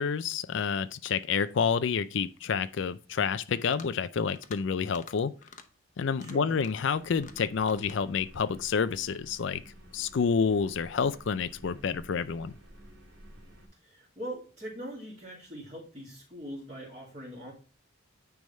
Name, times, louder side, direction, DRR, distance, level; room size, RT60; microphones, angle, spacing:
voice 1, 0.0-5.3 6.0-9.6 9.9-12.5, left 6 dB, 65° left, 0.4 m, -29 dB
sound 1, 3.6-4.0 4.3-4.6 4.9-5.2 5.4-5.7 6.1-6.9 7.2-8.0, left 6 dB, 35° left, 0.8 m, -49 dB
voice 2, 6.2-6.6 13.8-17.5, equal, 30° right, 2.1 m, -42 dB
sound 2, 6.9-13.7, right 1 dB, 70° right, 2.4 m, -52 dB
9.3 x 3.5 x 5.3 m
head